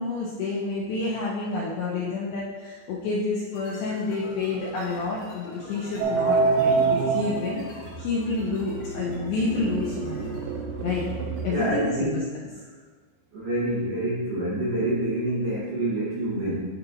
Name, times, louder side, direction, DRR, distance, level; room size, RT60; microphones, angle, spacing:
voice 1, 0.0-7.7 8.0-10.3 10.8-11.1 11.4-12.2, left 3 dB, 80° left, -5 dB, 2.2 m, -29 dB
sound 1, 3.5-11.8, left 2 dB, 55° left, 2.0 m, -46 dB
sound 2, 6.0-11.5, right 4 dB, 85° right, 2.9 m, -27 dB
voice 2, 11.5-12.2 13.3-16.7, right 1 dB, 65° right, -8 dB, 2.4 m, -27 dB
11.0 x 4.1 x 2.7 m, 1.5 s
omnidirectional pair, 5.2 m